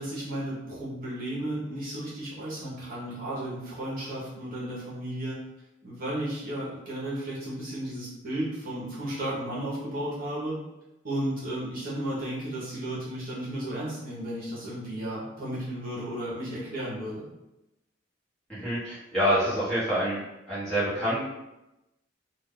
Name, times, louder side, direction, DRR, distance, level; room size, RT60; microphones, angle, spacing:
voice 1, 0.0-5.4 5.8-10.6 11.0-17.2, right 1 dB, 45° right, -7 dB, 0.9 m, -34 dB
voice 2, 18.5-21.2, equal, 5° left, -12 dB, 1.2 m, -27 dB
2.5 x 2.3 x 3.6 m, 0.96 s
head